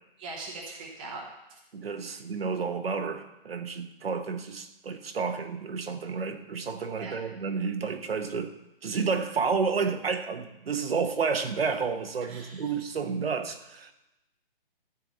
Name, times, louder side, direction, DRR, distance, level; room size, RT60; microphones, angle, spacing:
voice 1, 0.2-1.6 7.0-7.2 12.2-12.7, right 3 dB, 10° right, -3 dB, 0.7 m, -41 dB
voice 2, 1.7-8.5 8.8-13.9, right 5 dB, 80° right, 7 dB, 1.4 m, -30 dB
13.5 x 4.7 x 8.4 m, 0.91 s
hypercardioid pair, 175°, 30 cm